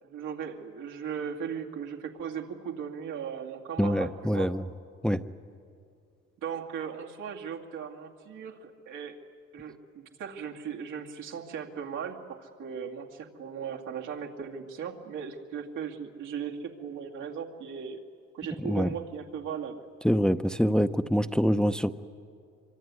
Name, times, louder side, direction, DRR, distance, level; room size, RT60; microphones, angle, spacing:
voice 1, 0.0-4.5 6.4-9.2 9.5-18.0 18.3-19.8, right 7 dB, 85° right, 0 dB, 2.4 m, -37 dB
voice 2, 3.8-4.6 5.0-5.2 18.6-18.9 20.0-21.9, equal, 5° left, 9 dB, 0.6 m, -25 dB
25.0 x 24.0 x 9.6 m, 2.3 s
cardioid pair, 90°, 30 cm